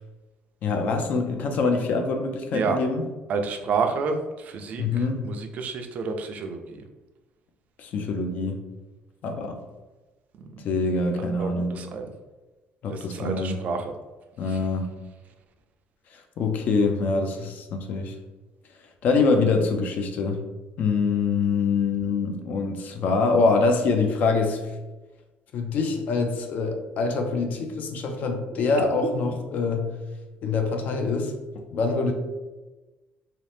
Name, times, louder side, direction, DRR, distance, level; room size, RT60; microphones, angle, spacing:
voice 1, 0.6-3.1 4.8-5.2 7.8-8.6 9.2-9.6 10.6-11.8 12.8-13.6 14.4-15.0 16.4-18.2 19.0-20.4 20.8-24.6 25.5-29.9 30.4-31.3 31.7-32.1, left 4 dB, 50° left, 5 dB, 0.4 m, -24 dB
voice 2, 3.3-4.9 5.2-6.8 11.2-12.1 12.9-13.9, right 5 dB, 45° right, 5 dB, 0.3 m, -29 dB
2.7 x 2.0 x 3.2 m, 1.2 s
cardioid pair, 155°, 4 cm